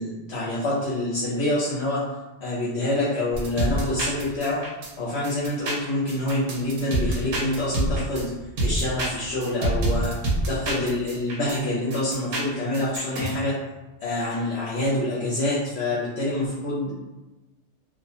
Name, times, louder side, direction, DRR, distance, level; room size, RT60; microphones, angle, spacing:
voice 1, 0.0-2.0 2.4-4.6 5.0-8.3 8.6-10.1 10.5-13.5 14.0-16.9, left 1 dB, 70° left, -7 dB, 0.8 m, -26 dB
sound 1, 3.3-4.9 5.2-8.2 8.6-11.6 11.9-13.3, right 1 dB, 70° right, 0.8 m, -27 dB
2.3 x 2.1 x 2.8 m, 1.1 s
omnidirectional pair, 1.2 m